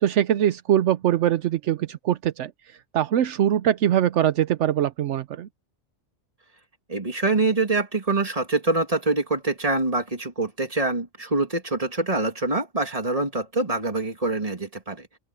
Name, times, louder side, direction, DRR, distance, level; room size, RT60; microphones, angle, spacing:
voice 1, 0.0-2.5 2.9-5.5, right 11 dB, 75° right, 0.9 m, -22 dB
voice 2, 6.9-15.1, right 3 dB, 30° right, 2.7 m, -25 dB
open air
omnidirectional pair, 1.2 m